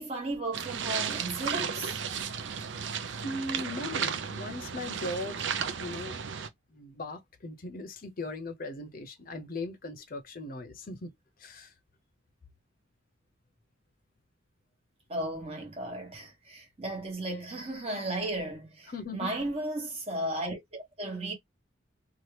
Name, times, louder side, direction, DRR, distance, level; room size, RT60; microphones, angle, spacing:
voice 1, 0.0-2.0 15.1-21.3, right 1 dB, 30° right, 1.2 m, -35 dB
sound 1, 0.5-6.5, right 7 dB, 70° right, 0.5 m, -34 dB
voice 2, 3.2-5.5 5.8-6.2 6.7-11.1 11.4-11.7 18.9-19.3, left 2 dB, 45° left, 0.6 m, -38 dB
2.8 x 2.3 x 3.2 m
head